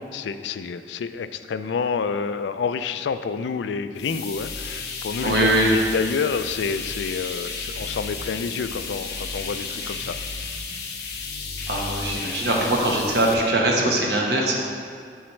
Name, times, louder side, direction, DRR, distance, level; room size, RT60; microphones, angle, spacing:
voice 1, 0.1-10.2, left 5 dB, 85° left, 11 dB, 0.3 m, -28 dB
sound 1, 4.0-13.3, left 4 dB, 60° left, 0.8 m, -33 dB
voice 2, 5.2-5.7 11.7-14.6, right 1 dB, 65° right, -2 dB, 1.1 m, -21 dB
7.2 x 7.0 x 3.2 m, 2.2 s
head